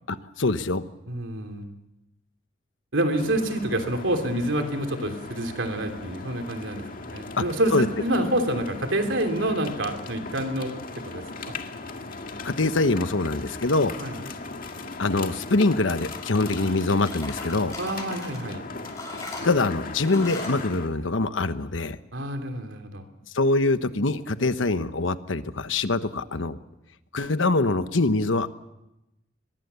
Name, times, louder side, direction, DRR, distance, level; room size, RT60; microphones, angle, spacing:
voice 1, 0.1-0.8 7.4-7.5 7.7-7.9 12.4-13.9 15.0-17.7 19.4-22.0 23.3-26.6 27.1-28.5, left 2 dB, 90° left, 11 dB, 1.1 m, -24 dB
voice 2, 1.1-1.7 2.9-6.8 7.1-10.8 11.0-11.5 14.0-14.2 17.8-18.6 22.1-23.0, right 1 dB, 85° right, 5 dB, 3.1 m, -27 dB
sound 1, 3.1-20.9, left 3 dB, 45° left, 2.0 m, -38 dB
sound 2, 16.0-16.7 17.1-18.4 18.8-20.6, left 2 dB, 15° left, 7.2 m, -39 dB
23.0 x 21.5 x 7.0 m, 0.93 s
head